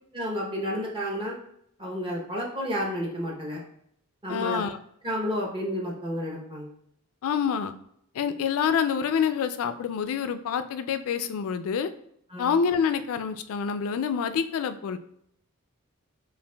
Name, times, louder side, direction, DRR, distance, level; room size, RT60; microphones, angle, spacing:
voice 1, 0.1-1.4 1.8-3.6 4.2-4.6 5.0-6.7 12.3-12.5, equal, 25° right, -3 dB, 0.8 m, -31 dB
voice 2, 4.3-4.8 7.2-7.7 8.1-11.9 12.4-15.0, left 7 dB, 65° left, 10 dB, 0.3 m, -27 dB
5.7 x 2.5 x 2.2 m, 0.70 s
head